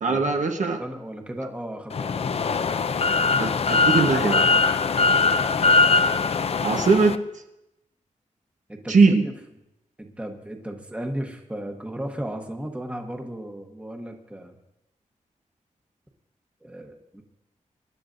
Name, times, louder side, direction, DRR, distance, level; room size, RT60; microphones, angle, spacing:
voice 1, 0.0-0.8 3.4-4.5 6.6-7.1 8.9-9.3, right 4 dB, 70° right, 3 dB, 1.1 m, -20 dB
voice 2, 0.6-2.9 5.0-5.2 8.7-9.3 10.0-14.6 16.6-17.2, right 1 dB, 10° right, 3 dB, 1.1 m, -36 dB
sound 1, 1.9-7.2, left 4 dB, 50° left, 0.5 m, -21 dB
25.0 x 11.5 x 2.6 m, 0.88 s
wide cardioid pair, 165°, 13 cm